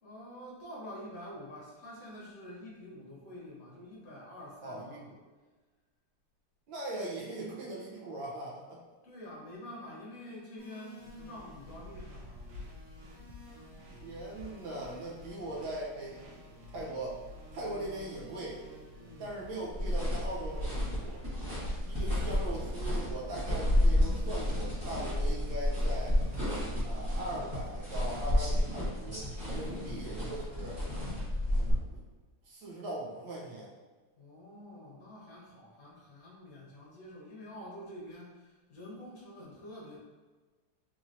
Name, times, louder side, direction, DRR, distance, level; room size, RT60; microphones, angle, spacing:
voice 1, 0.0-5.0 9.0-12.7 19.0-19.3 29.6-30.2 34.2-40.0, left 1 dB, 50° left, -5 dB, 1.2 m, -47 dB
voice 2, 4.6-5.2 6.7-8.8 14.0-16.2 16.7-17.2 17.5-18.7 19.2-21.2 21.8-26.2 26.8-30.8 31.5-32.0 32.4-33.7, right 1 dB, 70° right, -4 dB, 1.5 m, -40 dB
sound 1, 10.6-26.5, right 1 dB, 50° right, 1.1 m, -56 dB
sound 2, 11.0-21.2, left 2 dB, 85° right, 1.6 m, -51 dB
sound 3, 19.7-31.7, left 1 dB, 15° right, 1.0 m, -31 dB
4.2 x 2.9 x 2.5 m, 1.3 s
omnidirectional pair, 2.4 m